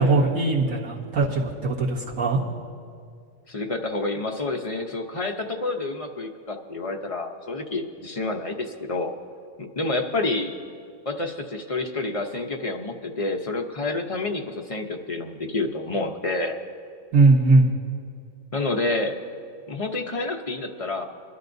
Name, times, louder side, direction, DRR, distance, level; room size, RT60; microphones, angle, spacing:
voice 1, 0.0-2.4 17.1-17.7, right 3 dB, 70° right, -4 dB, 2.0 m, -20 dB
voice 2, 3.5-9.1 9.6-10.6 11.1-16.6 18.5-19.2 19.7-21.0, left 2 dB, 35° left, 3 dB, 0.5 m, -28 dB
24.0 x 11.5 x 2.7 m, 2.3 s
omnidirectional pair, 1.4 m